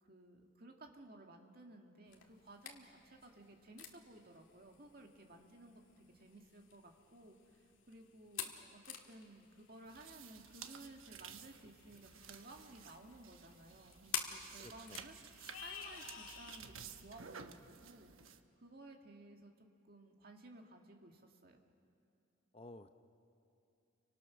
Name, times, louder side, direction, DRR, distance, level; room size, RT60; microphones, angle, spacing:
voice 1, 0.0-7.6 7.9-15.2 15.5-21.6, right 2 dB, 45° right, 2 dB, 2.0 m, -57 dB
sound 1, 2.1-16.6, left 8 dB, 75° left, 2.0 m, -50 dB
sound 2, 9.8-18.4, right 7 dB, 90° right, 1.1 m, -54 dB
voice 2, 14.6-15.0 22.5-22.9, left 1 dB, 30° left, 8 dB, 0.7 m, -54 dB
30.0 x 24.5 x 6.2 m, 2.6 s
head